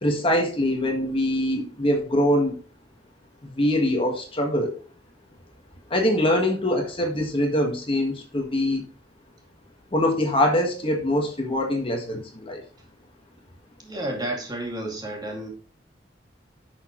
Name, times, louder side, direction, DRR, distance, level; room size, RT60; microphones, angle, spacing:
voice 1, 0.0-2.6 3.4-4.7 5.9-8.9 9.9-12.6, left 1 dB, 30° left, 1.6 m, -23 dB
voice 2, 13.8-15.5, right 1 dB, 20° right, 2.3 m, -31 dB
11.0 x 6.3 x 3.1 m
head